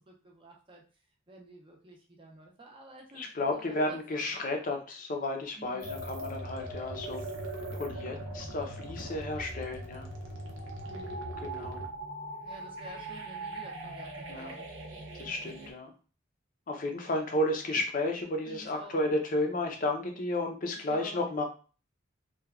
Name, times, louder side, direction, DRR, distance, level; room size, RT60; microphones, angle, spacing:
voice 1, 0.1-0.8 1.3-4.2 5.5-5.9 10.8-11.2 11.6-11.7 12.4-14.7 15.5-15.7 16.9-17.3 18.5-19.0 20.7-21.2, right 1 dB, 25° right, 0 dB, 0.6 m, -51 dB
voice 2, 3.2-7.2 7.7-10.1 11.4-11.8 14.3-14.5 15.2-15.9 16.7-21.4, left 1 dB, 45° left, 3 dB, 0.5 m, -32 dB
sound 1, 5.8-15.7, right 1 dB, 75° right, 0.5 m, -40 dB
2.9 x 2.2 x 2.3 m, 0.36 s
head